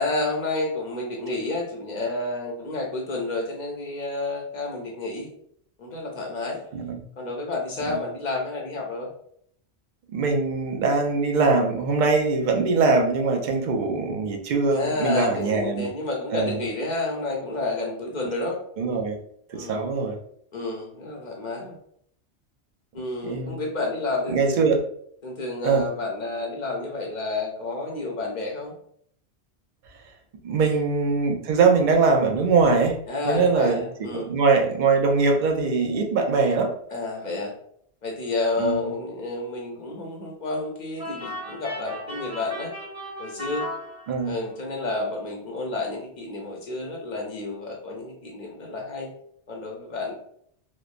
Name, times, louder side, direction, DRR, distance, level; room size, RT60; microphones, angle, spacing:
voice 1, 0.0-5.3 5.8-6.6 7.2-9.1 14.7-18.6 19.5-19.8 20.5-21.8 22.9-24.7 25.2-28.7 30.6-30.8 33.1-34.3 36.9-37.5 38.0-42.7 43.2-43.6 44.2-49.1 49.5-50.1, left 2 dB, 50° left, -1 dB, 0.6 m, -30 dB
voice 2, 10.1-15.9 16.3-16.6 18.8-19.2 19.5-20.1 23.2-23.5 24.3-24.8 25.6-25.8 30.4-33.0 33.3-33.8 34.1-36.7 38.6-38.9 44.1-44.4, right 4 dB, 60° right, 3 dB, 0.5 m, -22 dB
sound 1, 41.0-44.5, left 1 dB, 40° right, 1.4 m, -36 dB
3.0 x 2.0 x 2.4 m, 0.66 s
omnidirectional pair, 1.2 m